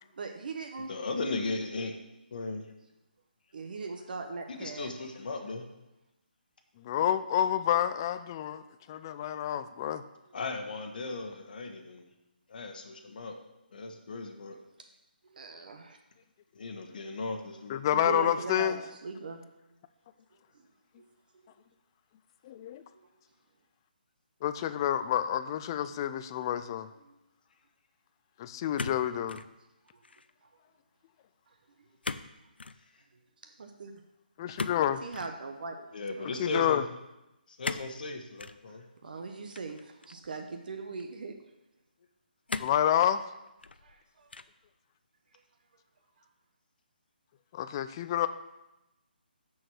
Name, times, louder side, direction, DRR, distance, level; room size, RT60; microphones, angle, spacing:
voice 1, 0.1-0.9 3.5-4.9 15.3-16.0 17.9-19.4 20.5-20.7 21.0-21.1 22.6-23.1 27.0-27.1 31.5-31.9 33.6-33.9 35.0-35.9 36.2-36.5 38.7-41.4 43.8-44.3, right 4 dB, 60° right, 5 dB, 0.9 m, -40 dB
voice 2, 0.9-1.9 2.3-2.7 4.5-5.6 10.3-12.1 12.5-13.4 13.7-14.6 16.5-17.8 35.9-36.9 37.5-38.9, left 3 dB, 60° left, 4 dB, 1.2 m, -36 dB
voice 3, 6.8-8.6 8.9-10.0 17.7-18.8 22.4-22.8 24.4-26.9 28.4-29.4 34.4-35.0 36.4-36.8 42.6-43.2 47.5-48.3, left 10 dB, 25° left, 12 dB, 0.4 m, -28 dB
sound 1, 28.8-29.5 29.9-30.3 32.0-32.3 32.6-32.8 34.6-35.3 37.6-37.9 38.4-38.6 39.5-40.3 41.0-41.1 42.5-42.9 43.5-43.9 44.3-44.7, left 4 dB, 90° left, 0.5 m, -38 dB
6.5 x 6.3 x 6.2 m, 0.95 s
hypercardioid pair, 160°, 5 cm